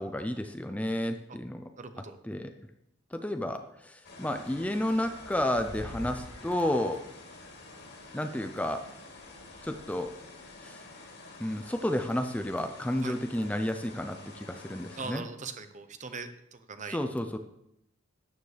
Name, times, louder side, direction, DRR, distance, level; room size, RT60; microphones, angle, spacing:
voice 1, 0.0-1.7 2.2-2.5 3.1-7.0 8.1-8.9 9.6-10.1 10.6-10.9 11.4-15.2 16.9-17.4, left 1 dB, 5° left, 6 dB, 0.5 m, -31 dB
voice 2, 1.8-2.2 13.0-13.2 15.0-17.0, right 4 dB, 35° right, 9 dB, 0.8 m, -40 dB
sound 1, 4.0-15.1, left 2 dB, 55° left, 2.7 m, -47 dB
12.5 x 9.4 x 3.3 m, 0.80 s
head